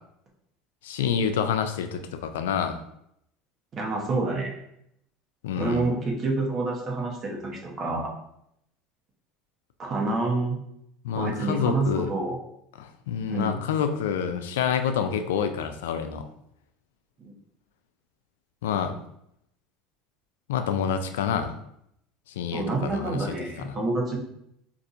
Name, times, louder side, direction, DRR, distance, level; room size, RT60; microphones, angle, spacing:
voice 1, 0.8-2.8 5.4-5.8 11.0-12.1 12.8-16.2 18.6-18.9 20.5-21.6 22.4-23.3 23.6-23.7, left 7 dB, 90° left, 8 dB, 0.3 m, -27 dB
voice 2, 3.7-4.5 5.6-8.1 9.8-10.6 11.1-12.4 13.3-13.6 17.2-17.3 22.5-24.2, right 2 dB, 40° right, 0 dB, 0.9 m, -28 dB
4.1 x 2.5 x 2.5 m, 0.76 s
supercardioid pair, 100°, 0 cm